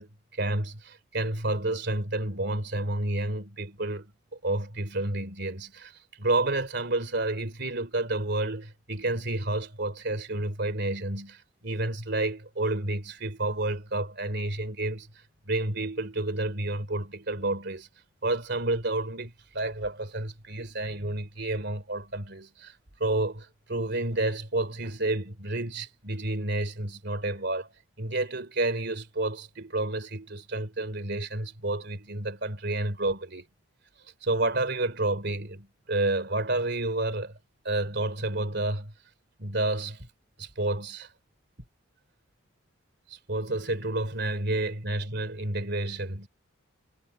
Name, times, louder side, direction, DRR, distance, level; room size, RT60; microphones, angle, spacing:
voice 1, 0.0-4.1 4.4-5.9 6.2-15.1 15.5-17.9 18.2-22.7 23.0-27.7 28.0-33.4 34.2-37.3 37.6-38.9 39.4-40.1 40.4-41.1 43.1-46.3, right 2 dB, 50° right, 3.1 m, -30 dB
head